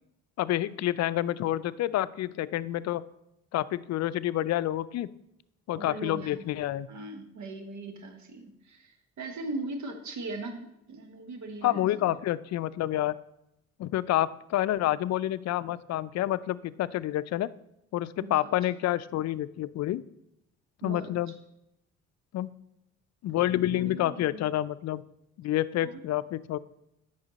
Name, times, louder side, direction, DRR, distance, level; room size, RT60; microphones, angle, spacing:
voice 1, 0.4-3.0 3.5-5.1 5.7-6.9 11.6-13.2 13.8-17.5 17.9-20.0 20.8-21.3 22.3-22.5 23.2-25.0 25.4-26.6, left 13 dB, 60° left, 17 dB, 0.4 m, -28 dB
voice 2, 5.7-6.4 6.9-12.1 18.2-18.5 20.8-21.2 23.7-24.4 25.8-26.0, right 2 dB, 70° right, 6 dB, 1.4 m, -39 dB
8.9 x 5.6 x 4.0 m, 0.84 s
cardioid pair, 90°, 30 cm